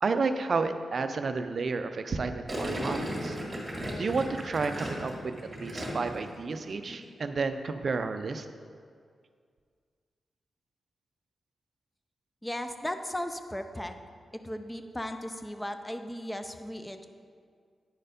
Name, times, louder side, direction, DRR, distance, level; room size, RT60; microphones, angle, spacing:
voice 1, 0.0-3.4 3.7-8.5, right 4 dB, 50° right, 9 dB, 0.4 m, -31 dB
Gurgling, 2.5-6.3 6.5-6.9, equal, 20° right, 1.8 m, -35 dB
voice 2, 12.4-13.9 14.4-17.1, left 1 dB, 10° left, 7 dB, 0.5 m, -36 dB
9.4 x 4.5 x 5.1 m, 2.1 s
wide cardioid pair, 125°, 0 cm